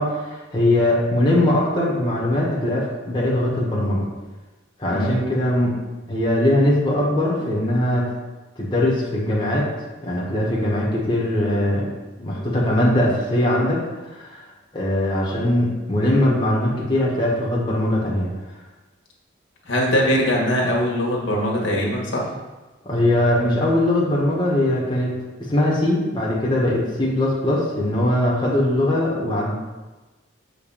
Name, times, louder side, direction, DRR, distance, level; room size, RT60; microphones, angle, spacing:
voice 1, 0.0-4.1 4.8-5.7 6.1-8.1 8.6-9.6 10.0-11.9 12.2-13.8 14.1-14.4 14.7-18.3 22.8-25.2 25.5-29.5, left 1 dB, 25° left, -5 dB, 1.6 m, -21 dB
voice 2, 19.6-22.3, equal, 85° left, -3 dB, 1.7 m, -21 dB
7.2 x 4.1 x 5.7 m, 1.2 s
head